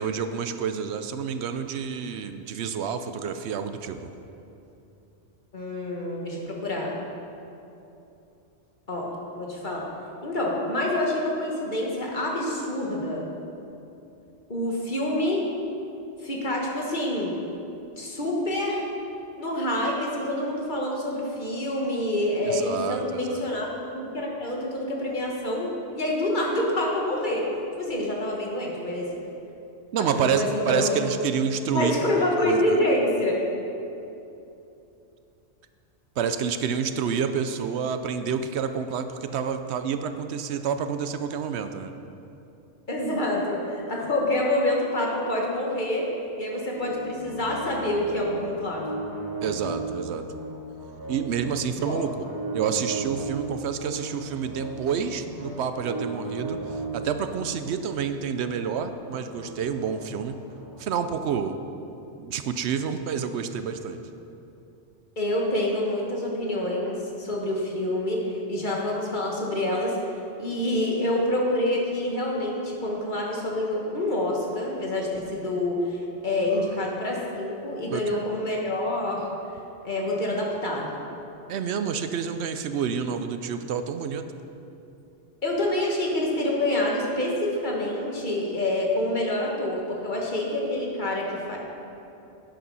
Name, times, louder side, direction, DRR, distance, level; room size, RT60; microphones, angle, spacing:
voice 1, 0.0-4.1 22.5-23.4 29.9-32.1 32.4-32.6 36.2-41.9 49.4-50.3 51.1-52.2 52.5-60.4 60.8-61.5 62.2-64.0 76.5-76.8 77.9-78.2 81.5-84.3, right 7 dB, 75° right, 9 dB, 0.8 m, -28 dB
voice 2, 5.5-7.0 8.9-9.8 10.2-13.3 14.5-15.4 16.2-17.3 18.0-18.8 19.4-23.7 23.9-27.5 27.8-29.1 30.2-31.0 31.7-33.4 42.9-46.0 46.4-49.0 51.8-51.9 65.2-70.0 70.4-79.3 79.8-81.0 85.4-91.6, left 1 dB, 45° left, -2 dB, 1.7 m, -27 dB
sound 1, 46.8-60.8, right 2 dB, 20° right, 0.9 m, -37 dB
10.5 x 8.5 x 5.4 m, 2.8 s
omnidirectional pair, 1.2 m